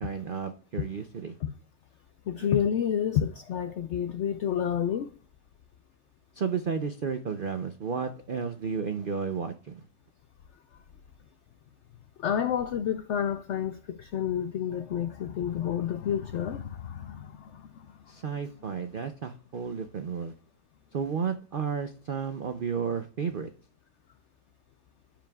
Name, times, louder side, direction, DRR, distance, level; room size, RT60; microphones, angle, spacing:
voice 1, 0.0-1.4 2.4-2.5 6.3-9.8 18.1-20.3 20.9-23.5, right 6 dB, 85° right, 0.4 m, -32 dB
voice 2, 2.3-5.1 12.2-17.9, left 9 dB, 85° left, 0.6 m, -29 dB
14.5 x 5.1 x 2.3 m
omnidirectional pair, 1.8 m